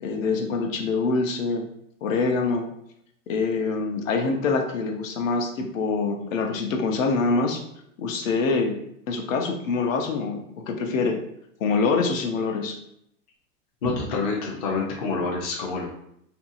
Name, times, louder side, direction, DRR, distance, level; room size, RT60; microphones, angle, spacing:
voice 1, 0.0-1.7 2.0-2.7 3.3-7.6 8.0-8.8 9.1-11.2 11.6-12.8, left 4 dB, 70° left, 3 dB, 0.8 m, -25 dB
voice 2, 13.8-15.9, left 3 dB, 30° left, -2 dB, 0.4 m, -27 dB
2.7 x 2.7 x 2.5 m, 0.74 s
hypercardioid pair, 150°, 42 cm